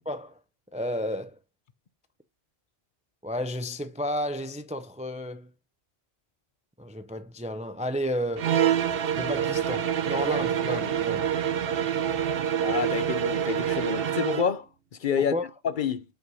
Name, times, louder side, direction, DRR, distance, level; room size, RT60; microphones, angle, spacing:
voice 1, 0.1-0.4 0.7-1.4 3.2-5.5 6.8-8.6 9.2-11.3 15.2-15.5, equal, 10° right, 0.4 m, -32 dB
sound 1, 8.4-14.5, right 9 dB, 65° right, 0.9 m, -26 dB
voice 2, 12.6-14.7 15.0-15.3 15.6-16.0, left 7 dB, 55° left, 0.8 m, -28 dB
5.7 x 5.4 x 6.2 m
omnidirectional pair, 1.1 m